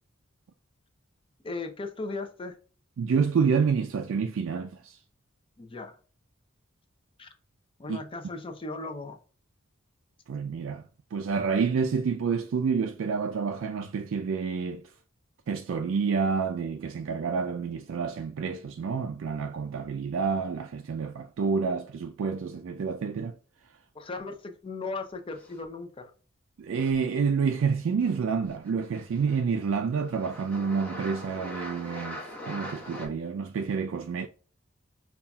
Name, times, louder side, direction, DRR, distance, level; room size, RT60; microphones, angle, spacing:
voice 1, 1.4-2.6 5.6-6.0 7.2-7.3 7.8-9.2 23.9-26.1, left 3 dB, 25° left, 0.5 m, -37 dB
voice 2, 3.0-5.0 7.9-8.0 10.3-10.8 11.1-14.8 15.5-23.3 26.6-34.3, right 5 dB, 70° right, 0.3 m, -28 dB
sound 1, 25.3-25.8 26.7-27.0 28.0-28.2 28.4-29.6 29.9-33.1, equal, 5° left, 1.0 m, -42 dB
5.4 x 2.4 x 2.2 m
head